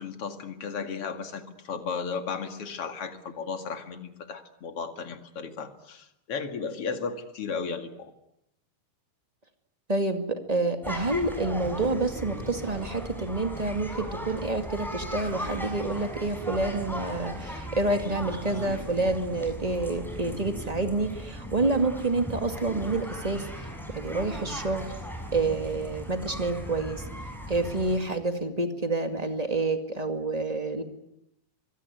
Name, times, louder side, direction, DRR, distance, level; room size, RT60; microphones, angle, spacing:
voice 1, 0.0-8.1, left 5 dB, 45° left, 6 dB, 2.5 m, -35 dB
voice 2, 9.9-23.5 23.9-24.8 25.3-27.0 27.5-30.8, right 2 dB, 20° right, 6 dB, 1.0 m, -28 dB
sound 1, 10.8-28.0, equal, ahead, 6.4 m, -38 dB
24.5 x 24.0 x 9.6 m, 0.80 s
omnidirectional pair, 4.5 m